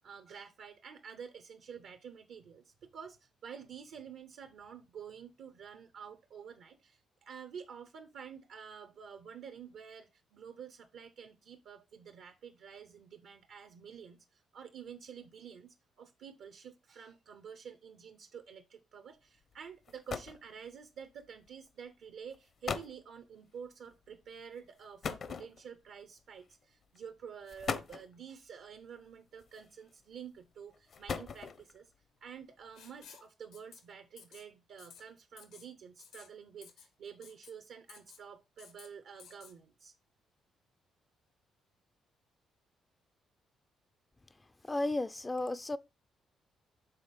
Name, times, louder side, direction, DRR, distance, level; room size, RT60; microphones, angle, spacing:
voice 1, 0.0-31.9 32.2-39.9, right 7 dB, 75° right, 0.7 m, -49 dB
sound 1, 19.5-19.6 19.9-20.5 21.5-21.7 22.3-22.4 22.6-23.0 25.0-25.9 26.8-27.0 27.5-28.1 29.4-29.9 30.7-31.8, left 5 dB, 55° left, 0.7 m, -39 dB
Writing, 32.7-33.3 33.5-33.8 34.2-34.4 34.8-35.0 35.4-35.7 36.0-36.3 36.6-36.9 37.2-37.5 37.9-38.2 38.6-38.9 39.2-39.5, left 7 dB, 90° left, 1.4 m, -54 dB
voice 2, 44.7-45.8, left 2 dB, 20° left, 0.3 m, -33 dB
5.7 x 3.8 x 5.2 m
cardioid pair, 90°, 0 cm